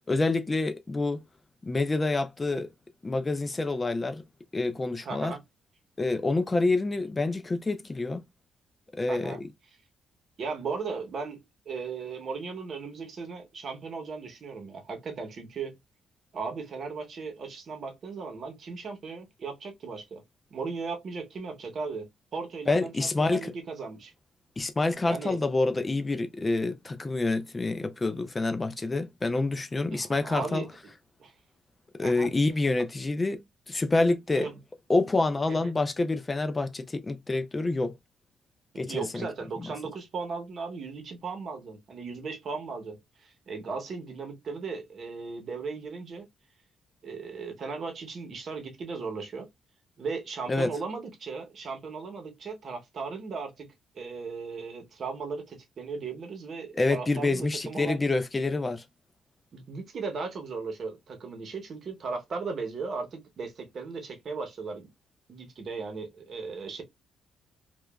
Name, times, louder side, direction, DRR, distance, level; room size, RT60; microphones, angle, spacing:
voice 1, 0.1-1.2 1.7-2.7 3.0-4.2 4.5-5.3 6.0-8.2 9.0-9.4 22.7-23.5 24.6-30.6 32.0-33.4 33.7-34.5 34.9-37.9 38.8-39.3 39.6-39.7 50.5-50.7 56.8-58.8, left 2 dB, 25° left, 0.3 m, -27 dB
voice 2, 5.0-5.4 9.1-9.4 10.4-11.4 11.7-15.8 16.3-20.2 20.5-24.1 25.1-25.4 29.9-30.7 31.2-31.3 32.0-32.3 34.4-34.6 35.5-35.7 38.7-46.3 47.0-49.5 50.0-53.7 53.9-58.0 59.5-64.9 65.3-66.8, right 4 dB, 50° right, 0.8 m, -37 dB
2.9 x 2.2 x 2.2 m
cardioid pair, 90°, 0 cm